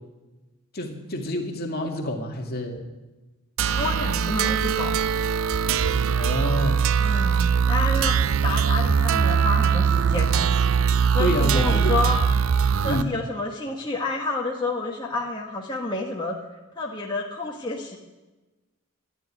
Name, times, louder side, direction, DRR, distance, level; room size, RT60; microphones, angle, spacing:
voice 1, 0.7-2.9 6.1-6.8 11.2-12.0 12.8-13.1, left 1 dB, 45° left, 2 dB, 2.2 m, -28 dB
sound 1, 3.6-13.0, right 6 dB, 65° right, 0.5 m, -21 dB
voice 2, 3.7-4.9 7.0-10.4 11.1-12.2 12.8-16.3 16.7-18.0, left 2 dB, 20° left, -3 dB, 1.5 m, -29 dB
13.5 x 10.5 x 9.7 m, 1.2 s
head